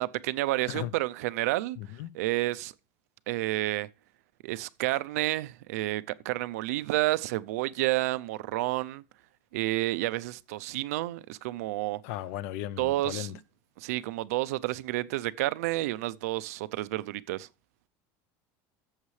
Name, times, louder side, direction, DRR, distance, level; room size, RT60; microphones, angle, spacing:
voice 1, 0.0-1.8 2.1-2.7 3.3-3.9 4.4-9.0 9.5-12.0 12.8-13.4 13.8-17.5, right 18 dB, 90° right, 0.5 m, -30 dB
voice 2, 1.8-2.1 12.0-13.4, left 14 dB, 60° left, 0.6 m, -36 dB
14.0 x 7.3 x 3.2 m
cardioid pair, 175°, 8 cm